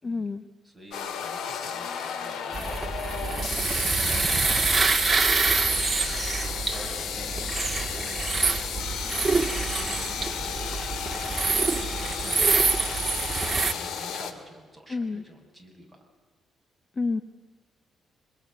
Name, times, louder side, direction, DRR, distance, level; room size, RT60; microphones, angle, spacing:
voice 1, 0.0-0.5 14.9-15.2 17.0-17.2, left 3 dB, 30° left, 10 dB, 1.1 m, -29 dB
voice 2, 0.6-6.1 6.7-8.3 8.7-9.2 9.7-11.7 12.0-13.3 13.6-16.1, equal, 5° left, 3 dB, 6.1 m, -49 dB
sound 1, 0.9-14.3, left 7 dB, 85° left, 2.3 m, -33 dB
sound 2, 2.5-13.7, right 4 dB, 25° right, 1.9 m, -26 dB
26.0 x 21.5 x 9.5 m, 1.5 s
cardioid pair, 120°, 0 cm